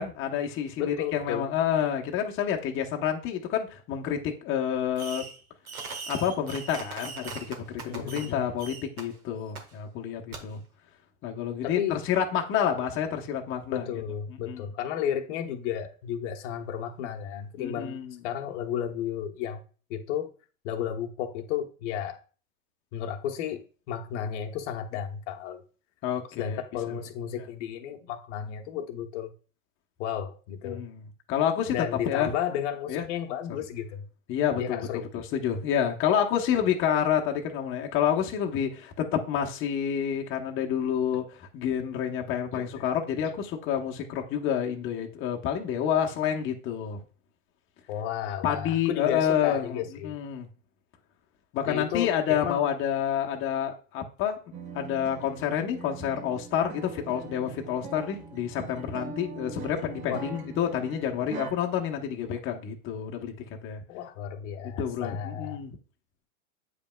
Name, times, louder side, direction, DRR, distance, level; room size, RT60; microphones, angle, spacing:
voice 1, 0.0-5.2 6.1-10.6 11.2-14.0 14.3-14.7 17.6-18.1 26.0-26.6 26.9-27.0 30.6-31.0 31.3-31.8 32.0-32.3 32.9-33.0 34.3-47.0 48.4-50.5 51.5-54.4 54.7-63.3 63.6-63.8 64.8-65.8, left 9 dB, 30° left, 0.9 m, -29 dB
voice 2, 0.8-1.5 7.9-8.5 11.6-12.0 13.7-18.0 18.2-19.6 19.9-20.3 20.6-22.2 22.9-25.6 26.4-29.3 30.0-30.8 31.6-34.1 34.6-35.0 42.5-42.9 47.9-50.2 51.6-52.7 59.1-59.2 60.1-60.3 63.9-65.6, left 9 dB, 55° left, 0.9 m, -33 dB
Fireworks, 5.0-5.4 5.7-8.3 8.6-9.0 9.6-9.7 10.3-10.4, right 4 dB, 90° right, 1.5 m, -39 dB
sound 1, 54.5-61.5, right 5 dB, 45° right, 1.4 m, -42 dB
8.3 x 5.3 x 2.2 m
hypercardioid pair, 120°, 42 cm